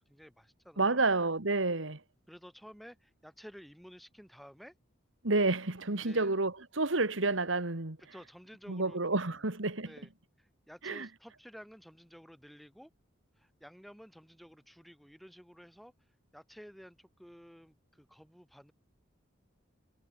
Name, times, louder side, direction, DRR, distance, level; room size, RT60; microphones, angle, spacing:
voice 1, 0.0-1.1 2.3-4.7 6.0-6.3 8.1-9.0 9.3-9.4 9.8-10.1 10.4-12.9 13.4-15.9 16.3-18.7, equal, ahead, 6.5 m, -53 dB
voice 2, 0.8-2.0 5.2-8.0 8.7-9.9 10.8-11.1, right 3 dB, 80° right, 2.2 m, -30 dB
head